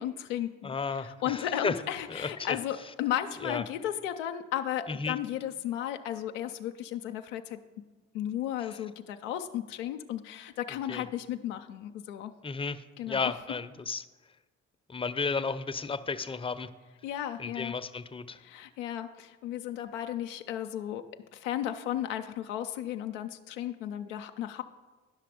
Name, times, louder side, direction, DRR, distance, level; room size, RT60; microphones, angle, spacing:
voice 1, 0.0-7.6 8.1-12.3 13.0-13.4 17.0-17.7 18.4-24.6, left 11 dB, 90° left, 6 dB, 0.5 m, -34 dB
voice 2, 0.6-1.8 2.1-2.6 3.4-3.6 4.9-5.2 10.9-11.0 12.4-14.0 14.9-16.7 17.4-18.4, left 4 dB, 15° left, 12 dB, 0.6 m, -33 dB
11.0 x 5.8 x 5.0 m, 1.2 s
hypercardioid pair, 45°, 36 cm